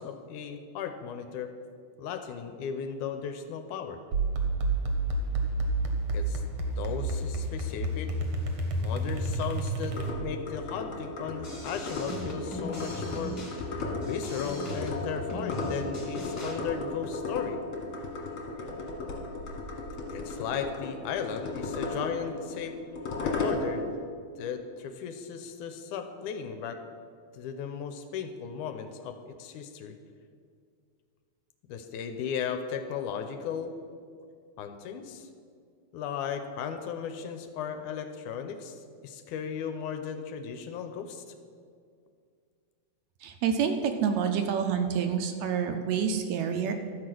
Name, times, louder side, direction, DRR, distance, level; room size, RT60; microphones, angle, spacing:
voice 1, 0.0-1.5 2.0-4.0 6.1-6.4 6.8-8.1 8.8-13.4 14.0-17.6 20.1-22.8 23.2-23.9 24.4-26.8 27.3-30.0 31.7-33.7 34.6-35.3 35.9-41.2, left 7 dB, 85° left, 7 dB, 2.1 m, -36 dB
sound 1, 4.1-10.5, right 2 dB, 60° right, 1.5 m, -30 dB
sound 2, 9.9-24.0, left 2 dB, 50° left, 2.3 m, -35 dB
sound 3, 11.4-16.5, left 1 dB, 20° left, 1.3 m, -39 dB
voice 2, 43.2-46.7, right 7 dB, 75° right, 6 dB, 1.7 m, -28 dB
12.5 x 4.8 x 7.6 m, 2.2 s
omnidirectional pair, 3.6 m